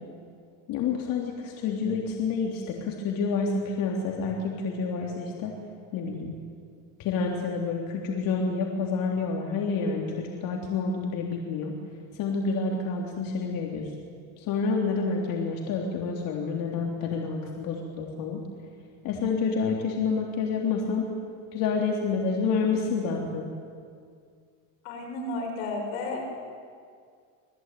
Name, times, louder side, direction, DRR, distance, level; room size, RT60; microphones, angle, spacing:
voice 1, 0.7-5.5 5.9-6.4 7.0-11.7 12.1-13.9 14.4-18.4 19.0-21.1 21.5-23.4, left 4 dB, 55° left, 0 dB, 3.6 m, -28 dB
voice 2, 24.8-26.2, left 2 dB, 85° left, 1 dB, 7.0 m, -32 dB
27.5 x 20.5 x 9.5 m, 2.2 s
cardioid pair, 130°, 39 cm